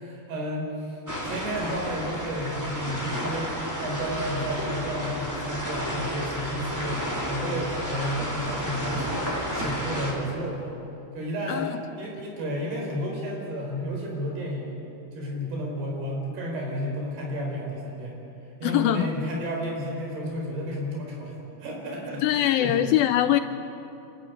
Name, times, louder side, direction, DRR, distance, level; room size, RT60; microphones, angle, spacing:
voice 1, 0.0-10.8 11.1-11.7 12.0-14.7 15.1-18.2 18.6-21.3 21.6-22.8, equal, 80° right, -1 dB, 6.6 m, -32 dB
sound 1, 1.1-10.1, equal, 5° right, 2.8 m, -31 dB
voice 2, 18.6-19.1 22.2-23.4, left 12 dB, 80° left, 10 dB, 2.2 m, -22 dB
27.5 x 12.5 x 9.6 m, 2.8 s
omnidirectional pair, 4.6 m